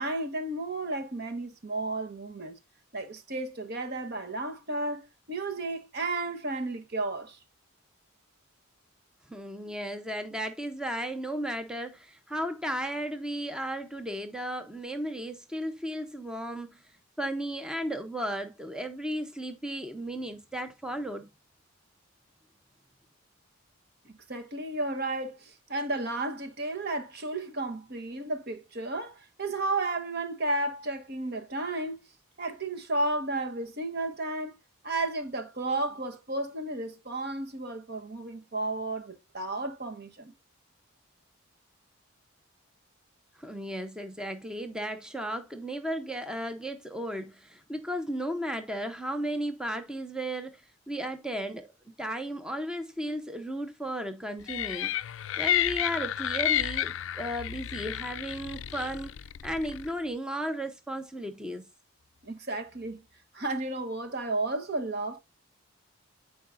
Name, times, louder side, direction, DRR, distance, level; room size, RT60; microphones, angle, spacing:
voice 1, 0.0-2.6 2.9-7.4 24.0-32.0 32.4-34.5 34.8-40.3 62.2-63.0 63.3-65.2, right 2 dB, 50° right, 1.1 m, -33 dB
voice 2, 9.3-21.3 43.4-51.7 52.0-54.9 55.4-59.1 59.4-61.6, equal, 5° right, 0.6 m, -35 dB
sound 1, 54.5-59.9, left 11 dB, 65° left, 0.4 m, -31 dB
14.0 x 4.7 x 2.5 m
head